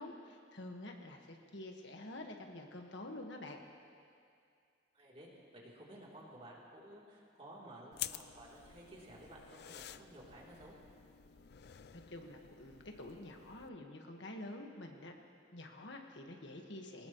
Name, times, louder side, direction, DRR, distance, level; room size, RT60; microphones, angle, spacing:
voice 1, 0.0-3.6 11.9-15.1 15.5-17.1, left 1 dB, 75° left, 2 dB, 1.6 m, -48 dB
voice 2, 4.9-10.7, right 1 dB, 30° right, -5 dB, 3.3 m, -54 dB
sound 1, 7.9-13.7, left 12 dB, 55° left, 0.4 m, -50 dB
24.0 x 19.0 x 3.1 m, 2.3 s
head